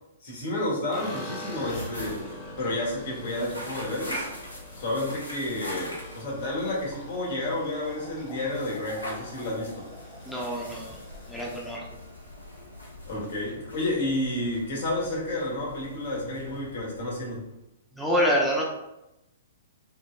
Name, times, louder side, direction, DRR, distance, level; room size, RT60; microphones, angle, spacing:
voice 1, 0.2-2.3 2.6-4.3 4.8-9.9 13.1-17.5, left 1 dB, 60° left, -3 dB, 1.3 m, -30 dB
sound 1, 0.9-13.2 13.5-14.1 14.4-14.5 14.8-15.5, left 1 dB, 30° left, 0.9 m, -46 dB
sound 2, 1.5-17.6, left 1 dB, 85° left, 0.7 m, -42 dB
voice 2, 10.3-11.0 11.3-11.8 18.0-18.6, equal, ahead, -4 dB, 0.5 m, -26 dB
4.5 x 2.1 x 2.2 m, 0.91 s
figure-of-eight pair, 115°, 0 cm